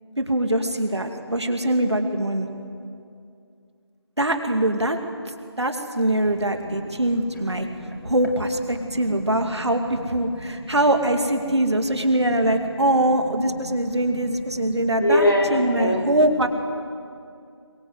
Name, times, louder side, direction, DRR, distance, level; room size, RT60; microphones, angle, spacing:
voice 1, 0.2-2.5 4.2-5.0 5.6-7.7 8.0-16.5, right 1 dB, 70° right, 5 dB, 2.5 m, -23 dB
voice 2, 7.6-8.1 8.8-9.6 10.5-10.6 13.7-14.0 14.6-14.7 15.0-16.1, left 1 dB, 45° left, -1 dB, 4.0 m, -25 dB
23.0 x 21.0 x 8.0 m, 2.4 s
figure-of-eight pair, 175°, 15 cm